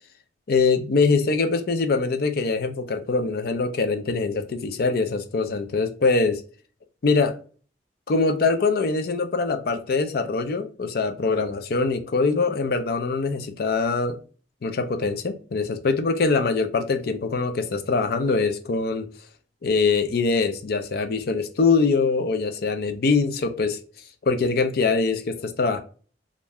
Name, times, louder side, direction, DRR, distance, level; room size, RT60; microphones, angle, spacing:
voice 1, 0.5-6.4 7.0-7.4 8.1-14.2 14.6-19.1 19.6-23.8 24.2-25.8, left 4 dB, 55° left, 0.4 m, -23 dB
2.5 x 2.1 x 3.3 m
head